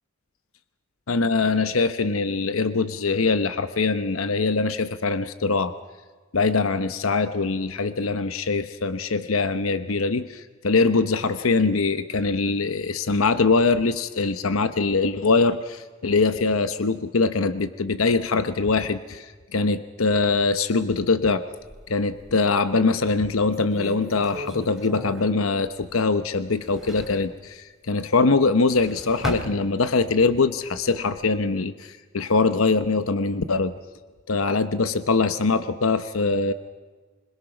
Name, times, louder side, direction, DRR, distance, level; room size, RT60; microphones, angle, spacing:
voice 1, 1.1-5.7 6.3-21.4 21.9-33.7 34.3-36.5, left 4 dB, 80° left, 11 dB, 0.9 m, -23 dB
sound 1, 21.6-22.6 23.1-23.2 23.5-26.2 26.5-27.3 28.4-30.2 30.6-31.3, equal, ahead, 2.7 m, -38 dB
26.0 x 22.0 x 6.0 m, 1.4 s
head